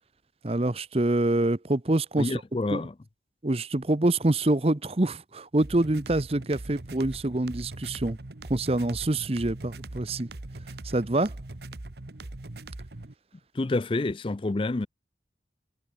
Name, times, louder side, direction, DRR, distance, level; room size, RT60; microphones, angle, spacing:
voice 1, 0.4-2.4 2.7-2.8 3.4-8.2 8.5-10.3 10.8-11.3, right 2 dB, 35° right, 0.8 m, -26 dB
voice 2, 2.2-2.9 13.5-14.9, left 2 dB, 30° left, 0.4 m, -28 dB
sound 1, 5.6-13.1, right 2 dB, 65° right, 1.3 m, -41 dB
head